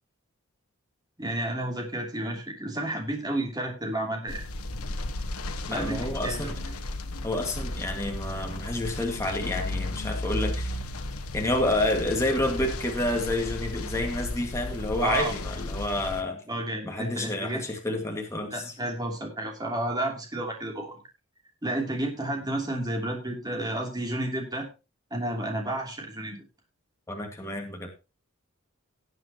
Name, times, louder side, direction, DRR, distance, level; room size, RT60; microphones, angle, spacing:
voice 1, 1.2-4.4 5.7-6.5 15.0-15.3 16.5-17.6 18.5-21.0 21.6-24.7 25.1-26.4, right 1 dB, 20° right, 1 dB, 2.8 m, -31 dB
sound 1, 4.3-16.2, left 2 dB, 85° left, 1.2 m, -34 dB
voice 2, 5.7-6.6 7.2-10.8 11.3-16.4 16.9-18.7 27.1-27.9, left 1 dB, 15° left, 2 dB, 1.9 m, -29 dB
18.5 x 7.6 x 2.9 m, 0.28 s
head